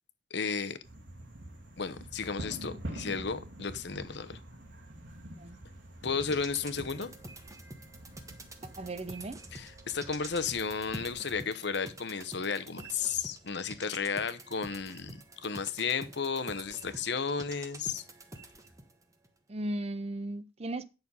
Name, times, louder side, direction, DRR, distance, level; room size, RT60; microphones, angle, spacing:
voice 1, 0.3-0.8 1.8-4.4 6.0-7.1 9.5-18.0, left 5 dB, 65° left, 1.0 m, -33 dB
sound 1, 0.8-11.2, right 1 dB, 85° right, 2.5 m, -46 dB
sound 2, 6.1-18.9 19.2-19.3, right 2 dB, 20° right, 1.4 m, -47 dB
voice 2, 8.6-9.4 19.5-20.9, right 1 dB, 35° right, 0.7 m, -36 dB
9.7 x 6.6 x 5.5 m
head